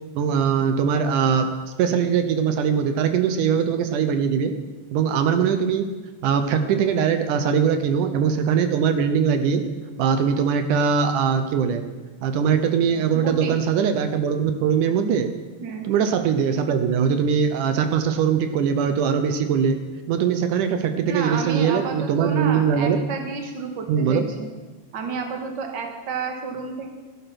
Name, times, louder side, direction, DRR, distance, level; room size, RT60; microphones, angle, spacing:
voice 1, 0.2-1.5 1.8-4.5 4.9-5.9 6.2-9.6 10.0-11.9 12.2-15.3 15.8-19.8 20.1-23.0 23.9-24.3, right 7 dB, 80° right, 8 dB, 2.4 m, -21 dB
voice 2, 13.1-13.5 15.6-15.9 21.0-24.5 24.9-26.9, right 5 dB, 45° right, 3 dB, 2.0 m, -31 dB
15.5 x 11.0 x 5.9 m, 1.3 s
omnidirectional pair, 3.6 m